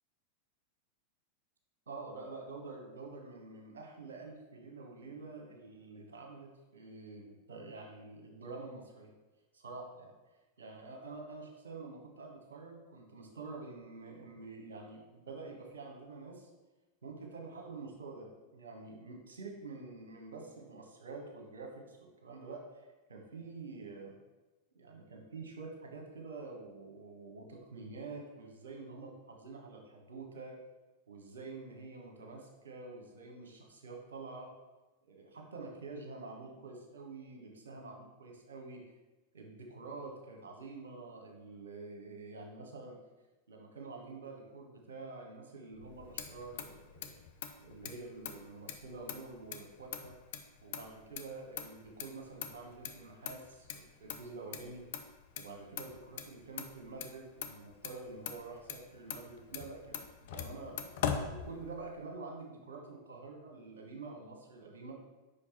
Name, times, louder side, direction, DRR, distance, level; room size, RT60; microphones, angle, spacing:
voice 1, 1.9-9.1 9.5-10.1 10.6-16.5 17.0-24.1 24.7-30.5 31.1-34.5 35.0-38.8 39.3-43.0 43.5-47.1 47.6-50.2 50.6-54.8 55.4-64.9, right 3 dB, 65° right, 2 dB, 1.2 m, -47 dB
Motor vehicle (road), 45.8-62.0, left 8 dB, 55° left, 0.5 m, -43 dB
5.2 x 5.2 x 4.3 m, 1.1 s
figure-of-eight pair, 90°, 0 cm